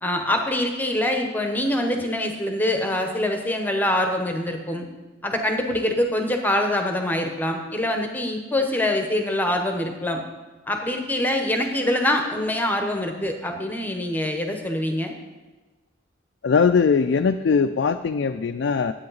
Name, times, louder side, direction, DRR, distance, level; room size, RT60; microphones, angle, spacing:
voice 1, 0.0-4.8 5.2-10.2 10.7-15.2, left 1 dB, 10° left, 4 dB, 0.8 m, -24 dB
voice 2, 16.4-18.9, left 5 dB, 65° left, 7 dB, 0.3 m, -20 dB
10.5 x 8.5 x 4.0 m, 1.2 s
head